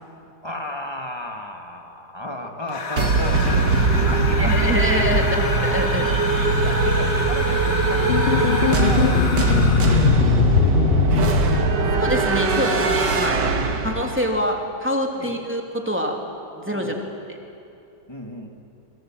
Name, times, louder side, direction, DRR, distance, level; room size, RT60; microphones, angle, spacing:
voice 1, 0.4-5.5 6.6-9.0 9.6-10.6 10.8-11.5 11.8-12.0 14.2-14.4 15.2-15.3 16.7-17.1 18.1-18.5, left 1 dB, 15° left, 2 dB, 2.3 m, -34 dB
sound 1, 2.7-10.3, left 4 dB, 50° left, 1.9 m, -30 dB
sound 2, 3.0-14.4, right 3 dB, 70° right, 2.2 m, -21 dB
voice 2, 4.3-6.1 6.3-6.5 11.9-13.5 13.8-16.2 16.5-17.0 17.3-17.4, equal, 5° right, 1 dB, 2.8 m, -25 dB
sound 3, 8.1-12.3, left 9 dB, 75° left, 0.5 m, -21 dB
27.0 x 24.5 x 7.6 m, 2.7 s
omnidirectional pair, 1.9 m